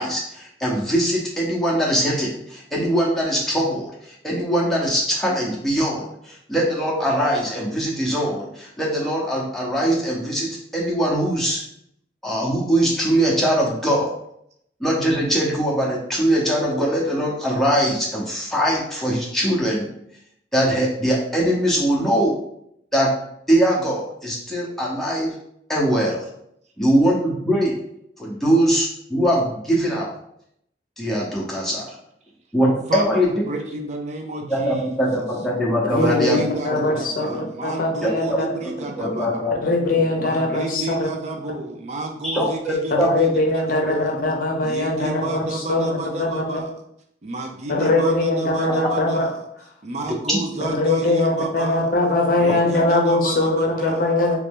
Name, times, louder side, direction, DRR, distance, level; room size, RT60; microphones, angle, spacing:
voice 1, 0.0-11.6 12.2-14.1 14.8-19.9 20.5-22.4 22.9-23.1 23.5-25.3 25.7-26.3 26.8-27.8 28.2-30.1 31.0-32.0 32.5-33.4 34.5-36.4 36.7-36.9 37.3-37.4 38.0-38.4 39.0-40.1 42.2-43.3 48.8-48.9 50.3-50.4, equal, ahead, -5 dB, 0.8 m, -22 dB
voice 2, 32.9-35.0 35.9-39.5 40.2-44.1 44.6-46.8 47.2-49.5 49.8-51.9 52.3-54.1, right 2 dB, 40° right, 2 dB, 0.4 m, -31 dB
voice 3, 35.9-38.5 39.6-41.1 43.0-46.4 47.7-49.3 50.7-54.4, left 2 dB, 50° left, 1 dB, 0.6 m, -21 dB
3.0 x 2.6 x 3.6 m, 0.74 s
head